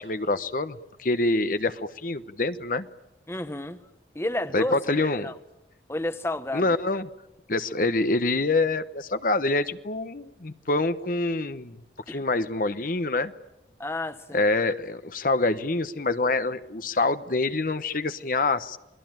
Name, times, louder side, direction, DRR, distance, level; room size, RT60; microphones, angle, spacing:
voice 1, 0.0-2.9 4.5-5.3 6.5-7.1 7.5-11.8 12.1-13.3 14.3-18.8, left 2 dB, 50° left, 1.0 m, -26 dB
voice 2, 3.3-3.8 4.1-4.8 5.2-5.3 5.9-6.7 12.1-12.2 13.8-14.4, left 1 dB, 15° left, 1.0 m, -31 dB
28.0 x 21.0 x 9.0 m
head